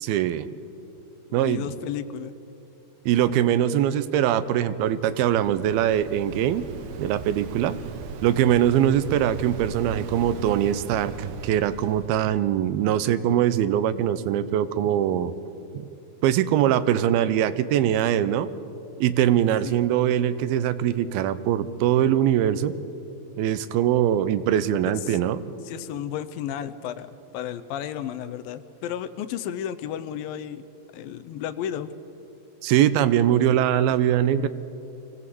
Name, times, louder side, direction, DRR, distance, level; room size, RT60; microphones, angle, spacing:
voice 1, 0.1-0.5 1.3-1.6 3.1-6.7 7.0-7.8 8.2-15.3 15.7-15.9 16.2-18.5 19.0-22.7 23.4-25.4 32.6-34.5, right 11 dB, 85° right, 14 dB, 2.6 m, -22 dB
voice 2, 1.3-2.3 19.7-19.8 25.0-25.2 25.6-27.1 27.3-30.6 30.9-31.9, left 10 dB, 80° left, 11 dB, 2.3 m, -33 dB
Waves surf, 4.7-12.3, right 6 dB, 70° right, 2.4 m, -38 dB
24.0 x 17.0 x 7.8 m, 2.8 s
omnidirectional pair, 4.3 m